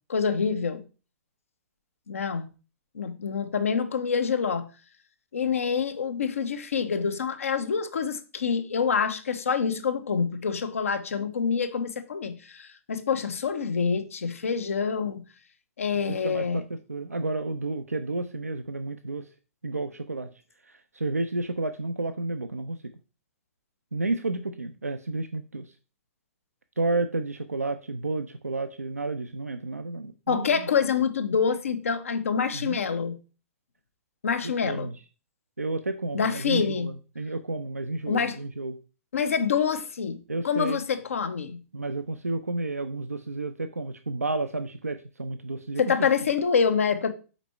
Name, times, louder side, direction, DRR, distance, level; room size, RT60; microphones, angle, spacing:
voice 1, 0.1-0.8 2.1-2.5 2.9-4.6 5.3-15.2 15.8-16.6 30.3-33.1 34.2-34.9 36.1-36.9 38.1-38.4 39.1-40.2 40.4-41.6 45.8-47.1, left 6 dB, 65° left, 0.7 m, -26 dB
voice 2, 16.1-19.3 19.6-20.3 20.6-22.8 23.9-25.7 26.8-30.7 32.5-32.8 34.4-35.0 35.6-38.8 40.3-40.8 41.7-46.1, right 2 dB, 85° right, 0.4 m, -31 dB
5.1 x 4.2 x 4.4 m
figure-of-eight pair, 110°, 8 cm